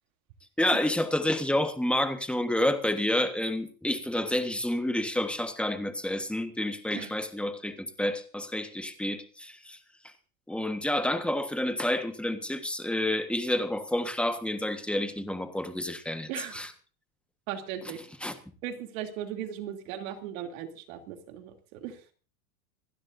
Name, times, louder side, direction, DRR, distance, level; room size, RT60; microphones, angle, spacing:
voice 1, 0.6-9.8 10.5-16.7 18.2-18.3, left 1 dB, ahead, 8 dB, 1.4 m, -29 dB
voice 2, 16.3-16.6 17.5-18.0 18.6-22.0, right 10 dB, 60° right, 4 dB, 3.0 m, -37 dB
26.5 x 12.5 x 2.7 m, 0.38 s
supercardioid pair, 135°, 46 cm